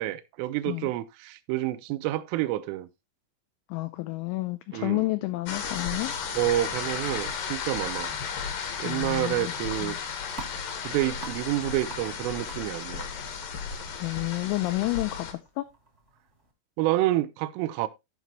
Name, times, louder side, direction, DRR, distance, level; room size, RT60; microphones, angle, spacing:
voice 1, 0.0-2.9 4.7-5.0 6.3-8.1 8.8-10.0 10.8-13.0 16.8-17.9, right 15 dB, 85° right, 3.2 m, -28 dB
voice 2, 3.7-6.1 8.8-9.5 9.8-10.0 14.0-15.6, left 20 dB, 80° left, 2.8 m, -30 dB
sound 1, 5.5-15.3, left 6 dB, 65° left, 2.3 m, -34 dB
sound 2, 9.8-16.5, right 3 dB, 35° right, 1.2 m, -49 dB
15.5 x 5.3 x 3.0 m
omnidirectional pair, 5.8 m